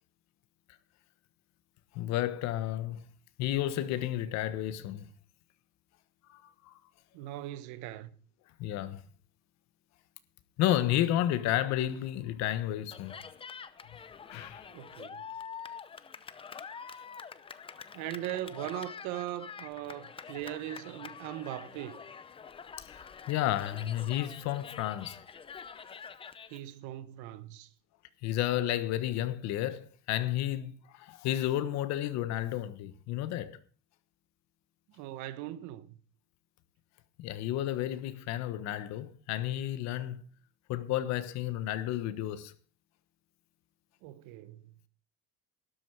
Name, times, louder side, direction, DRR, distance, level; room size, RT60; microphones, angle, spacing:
voice 1, 1.9-3.0 3.4-5.1 6.3-6.8 8.6-9.0 10.6-13.2 14.2-14.7 22.8-25.2 28.2-33.6 37.2-40.2 40.7-42.5, left 13 dB, 60° left, 1.4 m, -32 dB
voice 2, 7.1-8.1 14.7-15.2 17.9-22.0 26.5-27.7 34.9-36.0 44.0-44.6, right 14 dB, 75° right, 1.3 m, -39 dB
Cheering, 12.9-26.6, left 6 dB, 15° left, 0.7 m, -46 dB
12.5 x 11.0 x 4.8 m
cardioid pair, 155°, 31 cm